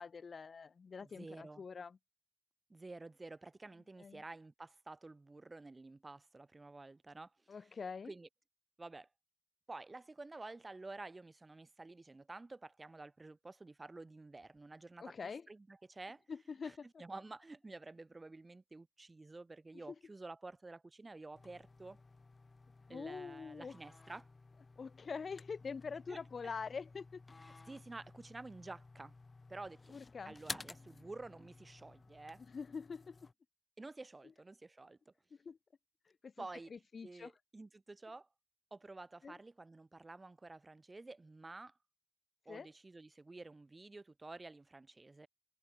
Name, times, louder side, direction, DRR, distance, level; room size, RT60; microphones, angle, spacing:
voice 1, 0.0-2.0 4.0-4.2 7.5-8.1 15.0-15.5 16.3-17.0 19.8-20.0 22.9-23.7 24.8-27.2 29.9-30.4 32.5-33.2 35.3-35.6 36.2-37.3 39.2-39.3 42.5-42.7, left 5 dB, 80° left, 0.7 m, -45 dB
voice 2, 1.0-1.6 2.7-7.3 8.1-8.3 8.8-9.1 9.7-15.1 15.5-16.2 16.6-22.0 22.9-24.3 26.1-26.5 27.7-29.1 29.5-30.0 30.2-32.4 33.8-35.1 36.4-36.7 37.0-38.3 38.7-41.7 42.5-45.3, right 3 dB, 35° right, 2.4 m, -51 dB
sound 1, 21.3-33.3, left 3 dB, 45° left, 4.3 m, -54 dB
wide cardioid pair, 85°, 0 cm